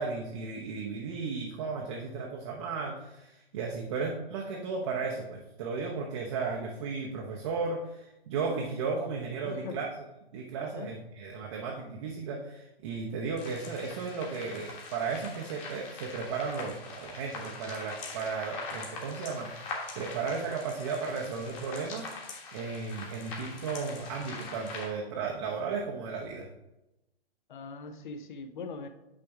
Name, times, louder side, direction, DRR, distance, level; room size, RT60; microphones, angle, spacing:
voice 1, 0.0-9.9 10.3-26.5, right 4 dB, 30° right, -1 dB, 0.7 m, -35 dB
voice 2, 9.4-9.8 10.6-10.9 27.5-28.9, left 4 dB, 50° left, 9 dB, 0.7 m, -41 dB
sound 1, 13.4-24.9, left 3 dB, 20° left, 1.4 m, -43 dB
8.6 x 3.4 x 4.7 m, 0.95 s
hypercardioid pair, 140°, 31 cm